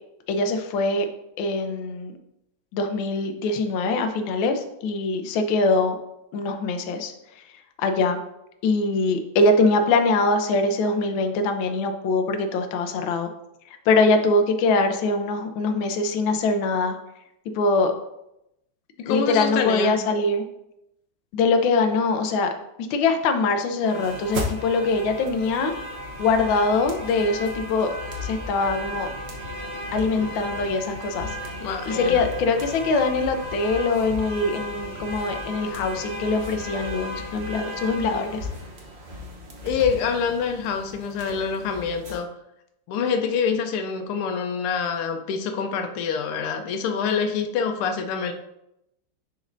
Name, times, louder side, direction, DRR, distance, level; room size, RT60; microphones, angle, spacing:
voice 1, 0.3-1.1 1.4-2.1 2.7-6.0 6.3-7.4 7.8-8.2 8.6-13.3 13.9-17.0 17.5-17.9 19.1-20.4 21.3-22.5 22.9-25.7 26.2-27.9 28.2-29.1 29.9-31.3 31.9-38.5, left 3 dB, 70° left, 6 dB, 1.4 m, -23 dB
voice 2, 19.1-20.0 30.2-30.3 30.5-30.7 31.6-32.3 39.6-42.3 42.9-48.3, left 6 dB, 90° left, 6 dB, 1.6 m, -26 dB
sound 1, 23.8-42.2, left 1 dB, 45° right, 0.8 m, -35 dB
10.0 x 4.1 x 2.6 m, 0.84 s
omnidirectional pair, 2.3 m